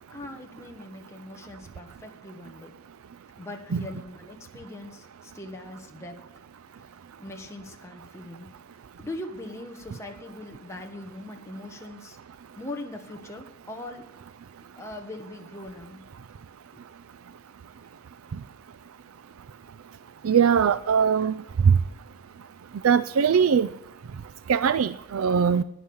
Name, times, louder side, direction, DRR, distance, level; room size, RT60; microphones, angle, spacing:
voice 1, 0.1-2.7 3.4-6.1 7.2-8.5 9.0-12.2 12.6-14.0 14.8-16.0 16.7-16.8, left 1 dB, 15° left, 2 dB, 1.4 m, -40 dB
voice 2, 20.2-21.3 21.7-21.8 22.8-23.7 24.5-25.6, right 7 dB, 65° right, 15 dB, 0.4 m, -20 dB
12.0 x 9.9 x 7.0 m, 0.83 s
head